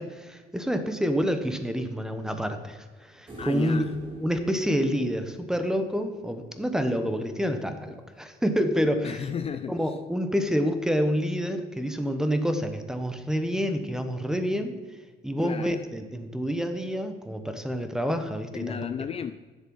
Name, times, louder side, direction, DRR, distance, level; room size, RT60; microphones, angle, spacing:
voice 1, 0.0-3.9 4.2-9.2 9.7-14.8 15.2-18.9, equal, 5° right, 8 dB, 1.0 m, -28 dB
sound 1, 3.3-6.5 9.1-9.2, right 1 dB, 30° right, 3.4 m, -42 dB
voice 2, 3.4-3.9 9.0-10.0 15.4-15.8 18.5-19.3, left 8 dB, 35° left, 10 dB, 0.5 m, -34 dB
10.5 x 7.5 x 5.5 m, 1.4 s
cardioid pair, 110°, 17 cm